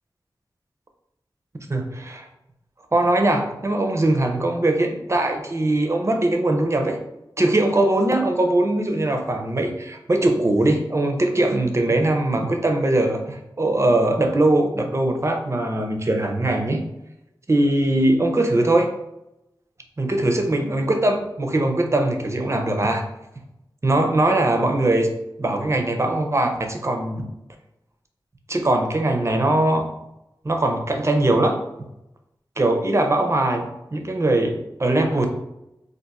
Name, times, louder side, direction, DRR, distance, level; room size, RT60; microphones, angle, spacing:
voice 1, 1.7-2.3 2.9-7.0 7.4-16.8 17.5-18.9 20.0-23.0 23.8-25.1 25.4-27.3 28.5-29.8 30.4-31.6 32.6-35.3, right 1 dB, 35° right, 4 dB, 0.5 m, -21 dB
2.5 x 2.4 x 4.0 m, 0.88 s
wide cardioid pair, 70°, 8 cm